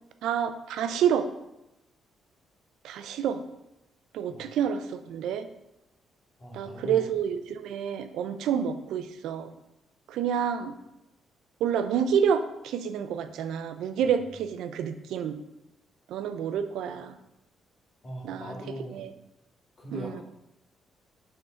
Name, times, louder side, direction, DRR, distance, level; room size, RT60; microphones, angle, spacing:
voice 1, 0.2-1.3 2.8-3.4 4.1-5.5 6.5-9.5 10.1-10.8 11.6-15.4 16.1-17.2 18.2-18.5 18.9-19.1 19.9-20.2, right 8 dB, 85° right, 10 dB, 0.5 m, -28 dB
voice 2, 6.4-7.1 14.0-14.1 18.0-19.0 19.8-20.2, equal, 35° left, -1 dB, 2.0 m, -40 dB
6.4 x 3.8 x 4.4 m, 0.90 s
cardioid pair, 90°, 0 cm